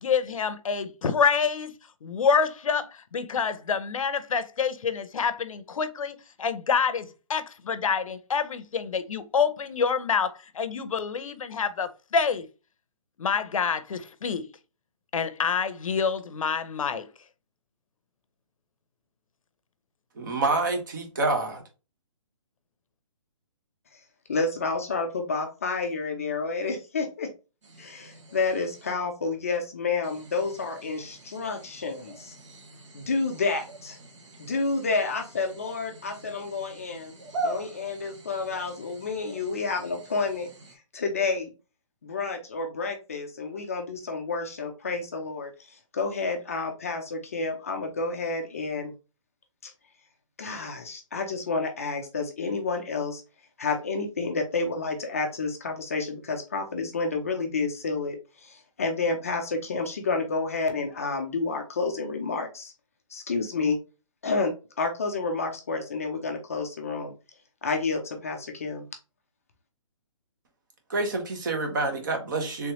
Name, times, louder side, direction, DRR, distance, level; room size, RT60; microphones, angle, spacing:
voice 1, 0.0-1.7 2.0-12.5 13.2-14.5 15.1-17.1, left 6 dB, 80° left, 0.6 m, -27 dB
voice 2, 20.2-21.6 70.9-72.7, right 3 dB, 35° right, 0.9 m, -27 dB
voice 3, 24.3-27.3 27.8-32.4 32.9-34.0 34.4-37.1 37.4-40.5 40.9-41.5 42.0-48.9 49.6-49.7 50.4-53.2 53.6-62.7 63.1-63.8 64.2-67.1 67.6-68.9, left 4 dB, 25° left, 0.4 m, -30 dB
sound 1, 27.6-28.9 30.0-40.8, right 2 dB, 60° right, 1.2 m, -42 dB
3.4 x 3.1 x 2.9 m
hypercardioid pair, 175°, 17 cm